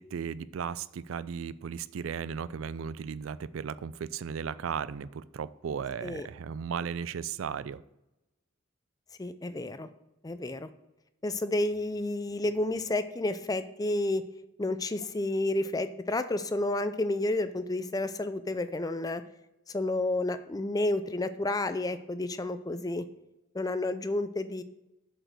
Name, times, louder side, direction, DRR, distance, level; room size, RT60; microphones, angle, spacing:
voice 1, 0.0-7.8, right 7 dB, 80° right, 17 dB, 0.4 m, -36 dB
voice 2, 9.2-9.9 10.2-10.7 11.2-14.2 14.6-19.2 19.7-23.1 23.5-24.6, left 2 dB, 20° left, 11 dB, 0.4 m, -30 dB
7.4 x 5.1 x 6.6 m, 0.92 s
head